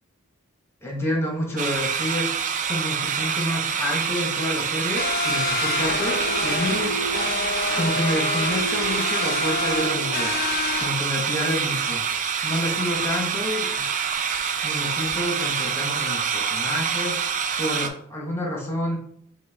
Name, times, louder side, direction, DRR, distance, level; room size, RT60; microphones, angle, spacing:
voice 1, 0.8-2.3 2.7-7.0 7.7-10.4 10.8-12.0 12.4-13.9 14.6-17.2 17.6-19.0, left 1 dB, 10° left, 0 dB, 1.0 m, -29 dB
sound 1, 1.6-17.9, right 7 dB, 40° right, 0.4 m, -26 dB
sound 2, 5.0-10.9, left 4 dB, 45° left, 0.5 m, -28 dB
5.9 x 2.3 x 3.4 m, 0.65 s
head